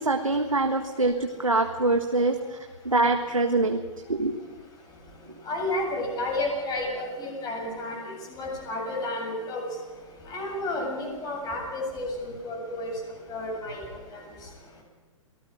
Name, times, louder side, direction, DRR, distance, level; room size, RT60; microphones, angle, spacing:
voice 1, 0.0-2.6 2.8-3.8 4.1-4.4, right 2 dB, 85° right, 4 dB, 1.6 m, -24 dB
voice 2, 5.5-8.0 8.4-9.6 10.3-12.9 13.3-13.8, left 2 dB, 25° left, 1 dB, 7.9 m, -31 dB
28.5 x 19.0 x 5.0 m, 1.5 s
figure-of-eight pair, 115°, 17 cm